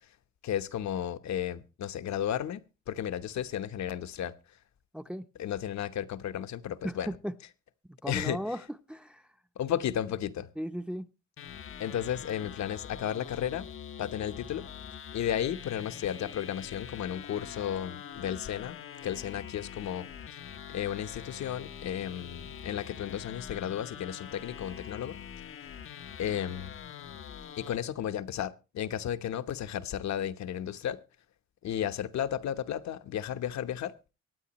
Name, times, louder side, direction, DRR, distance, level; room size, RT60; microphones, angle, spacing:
voice 1, 0.4-4.3 5.4-7.1 8.1-8.4 9.6-10.5 11.8-13.7 14.0-14.7 15.1-18.8 19.0-20.4 20.7-25.2 26.2-26.7 27.6-31.0 31.6-33.9, left 10 dB, 65° left, 1.0 m, -33 dB
voice 2, 4.9-5.3 6.8-7.3 7.9-8.6 8.9-9.2 10.6-11.1, equal, 5° right, 0.7 m, -36 dB
sound 1, 11.4-27.8, left 8 dB, 45° left, 0.7 m, -44 dB
24.0 x 9.4 x 3.0 m
cardioid pair, 90°, 30 cm